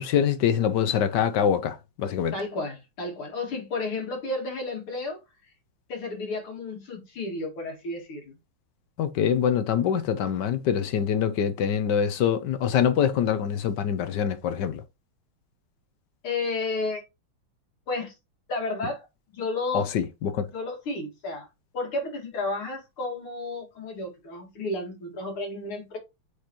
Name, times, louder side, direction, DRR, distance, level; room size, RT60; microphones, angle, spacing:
voice 1, 0.0-2.3 9.0-14.8 19.7-20.5, left 8 dB, 70° left, 1.1 m, -24 dB
voice 2, 2.3-5.2 5.9-8.4 16.2-17.0 17.9-18.1 18.5-19.9 20.5-21.5 21.7-26.0, left 2 dB, 90° left, 2.9 m, -32 dB
8.0 x 5.0 x 2.9 m
omnidirectional pair, 2.3 m